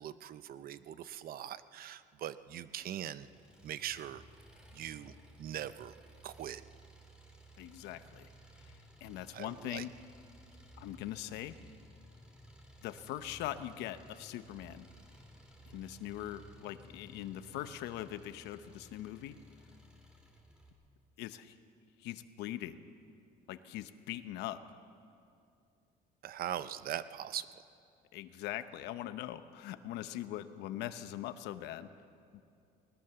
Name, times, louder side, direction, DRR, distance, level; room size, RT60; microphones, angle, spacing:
voice 1, 0.0-3.3 3.6-4.2 4.7-5.1 5.4-5.9 6.2-6.6 9.3-9.8 26.2-27.5, right 11 dB, 60° right, 14 dB, 0.8 m, -41 dB
Engine, 3.2-20.7, equal, 5° right, 3.8 m, -57 dB
voice 2, 7.6-8.3 8.6-8.7 9.0-9.9 10.8-11.6 12.8-14.9 15.7-19.4 21.2-21.5 22.0-22.8 23.5-24.6 28.1-31.9 32.3-32.4, left 13 dB, 90° left, 11 dB, 1.0 m, -41 dB
sound 1, 7.9-18.0, left 3 dB, 75° left, 3.0 m, -64 dB
20.0 x 19.5 x 7.0 m, 2.4 s
cardioid pair, 110°, 17 cm